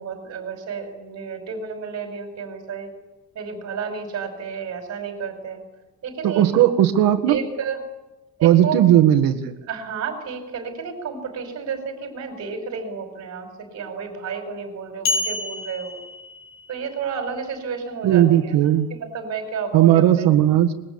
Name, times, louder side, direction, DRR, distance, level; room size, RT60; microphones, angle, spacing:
voice 1, 0.0-2.9 3.3-5.6 6.0-6.7 7.3-7.8 8.4-8.8 9.7-16.0 16.7-20.3, right 6 dB, 50° right, 5 dB, 5.3 m, -31 dB
voice 2, 6.2-7.4 8.4-9.6 18.0-18.9 19.7-20.7, right 12 dB, 90° right, 5 dB, 1.9 m, -16 dB
sound 1, 15.1-16.9, left 2 dB, 75° left, 6.7 m, -28 dB
26.0 x 22.0 x 8.8 m, 1.0 s
cardioid pair, 170°, 33 cm